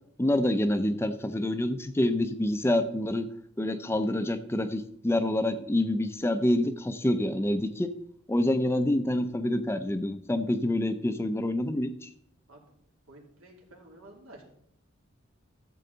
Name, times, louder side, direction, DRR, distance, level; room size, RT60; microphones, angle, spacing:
voice 1, 0.2-3.3 3.6-7.9 8.3-12.1, left 1 dB, 10° left, 10 dB, 0.5 m, -27 dB
voice 2, 13.1-14.4, right 1 dB, 90° right, 0 dB, 2.7 m, -51 dB
13.5 x 7.6 x 3.9 m, 0.70 s
head